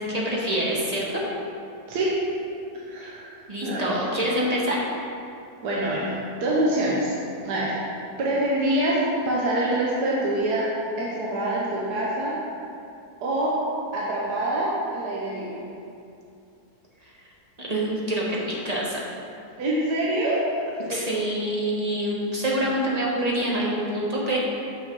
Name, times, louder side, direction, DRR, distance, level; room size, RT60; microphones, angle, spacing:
voice 1, 0.1-1.2 3.0-3.1 3.5-4.8 17.6-19.0 20.8-24.4, right 1 dB, 25° right, -4 dB, 1.1 m, -26 dB
voice 2, 2.9-4.0 5.6-6.1 6.4-7.1 7.4-7.8 8.2-9.0 9.2-10.6 11.0-12.3 13.2-13.5 13.9-15.6 19.6-20.4 20.7-21.0, right 1 dB, 70° right, -5 dB, 1.6 m, -25 dB
6.6 x 5.8 x 5.3 m, 2.6 s
omnidirectional pair, 1.8 m